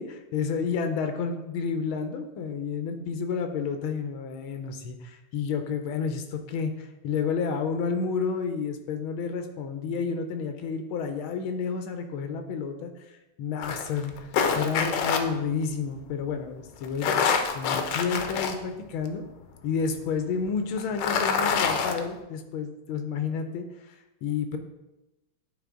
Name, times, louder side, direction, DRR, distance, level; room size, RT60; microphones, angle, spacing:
voice 1, 0.0-17.1 17.5-19.2 19.6-24.6, left 5 dB, 85° left, 6 dB, 1.5 m, -30 dB
sound 1, 13.6-15.2 16.8-18.5 19.1-19.2 20.8-22.0, left 6 dB, 70° left, 1.2 m, -26 dB
9.2 x 3.7 x 3.7 m, 0.98 s
omnidirectional pair, 2.2 m